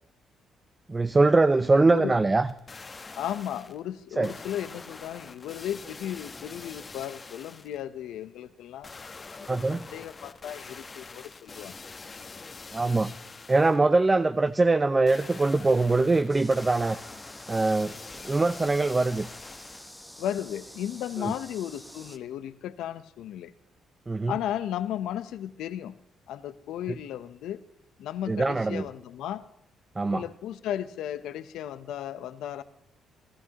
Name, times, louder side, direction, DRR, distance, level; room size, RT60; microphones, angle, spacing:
voice 1, 0.9-2.5 4.2-4.3 9.5-9.9 12.7-13.1 13.5-17.0 17.5-18.0 18.2-19.3 21.2-21.3 24.1-24.3 28.3-28.9 30.0-30.2, right 3 dB, 20° right, 12 dB, 0.5 m, -23 dB
voice 2, 1.8-2.2 3.2-8.9 9.4-11.7 20.2-23.5 24.3-26.0 26.3-27.6 28.0-29.5 30.1-32.6, left 11 dB, 85° left, 12 dB, 0.8 m, -35 dB
sound 1, 2.5-3.8 4.2-7.8 8.8-13.8 15.1-20.0 20.5-20.6, left 4 dB, 30° left, 1.1 m, -45 dB
sound 2, 16.3-22.2, equal, ahead, 0.9 m, -47 dB
25.5 x 13.5 x 2.9 m, 0.80 s
cardioid pair, 90°, 0 cm